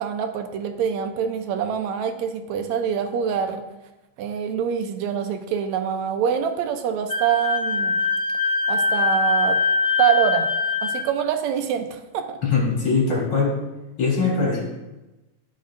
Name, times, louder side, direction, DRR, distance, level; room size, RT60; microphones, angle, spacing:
voice 1, 0.0-3.6 4.2-8.0 8.7-9.6 10.0-10.5 10.8-12.4, right 8 dB, 80° right, 6 dB, 2.0 m, -25 dB
Wind instrument woodwind instrument, 7.1-11.1, left 4 dB, 35° left, 1.8 m, -22 dB
voice 2, 12.4-13.5 14.0-14.6, left 4 dB, 55° left, -6 dB, 4.3 m, -21 dB
15.5 x 5.3 x 2.6 m, 1.0 s
omnidirectional pair, 3.3 m